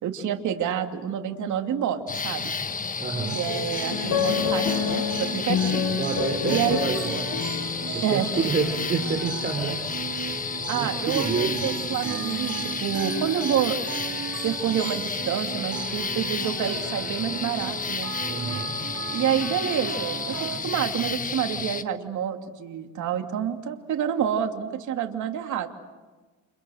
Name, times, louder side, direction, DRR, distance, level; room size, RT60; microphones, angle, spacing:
voice 1, 0.0-2.5 3.3-5.8 6.5-6.8 8.0-8.3 10.6-13.8 14.4-18.1 19.1-25.7, right 9 dB, 70° right, 4 dB, 2.8 m, -28 dB
sound 1, 2.1-21.8, left 5 dB, 25° left, 1.3 m, -31 dB
voice 2, 3.0-3.4 5.9-7.4 7.9-9.8 10.7-11.6 18.2-18.7, right 4 dB, 30° right, 3 dB, 3.9 m, -28 dB
sound 2, 3.3-20.6, right 8 dB, 50° right, 3.8 m, -36 dB
sound 3, 3.5-8.3, left 9 dB, 65° left, 2.0 m, -28 dB
30.0 x 29.0 x 6.5 m, 1.3 s
cardioid pair, 115°, 31 cm